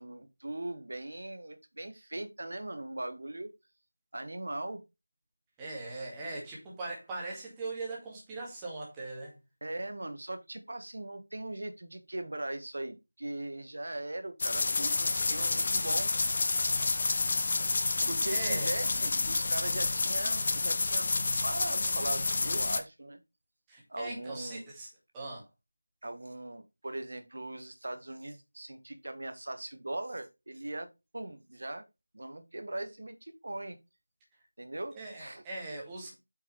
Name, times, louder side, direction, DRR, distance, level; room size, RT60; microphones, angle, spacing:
voice 1, 0.0-3.5 4.1-4.8 9.6-16.1 18.1-21.1 21.4-23.2 23.9-24.6 26.0-30.9 31.1-31.8 32.1-33.8 34.6-35.4, right 1 dB, 50° right, 1.5 m, -39 dB
voice 2, 5.6-9.3 18.3-18.7 23.7-24.9 25.1-25.5 34.9-36.2, right 2 dB, 10° right, 2.0 m, -40 dB
sound 1, 14.4-22.8, left 3 dB, 30° left, 0.8 m, -29 dB
8.3 x 5.5 x 3.3 m
figure-of-eight pair, 170°, 0 cm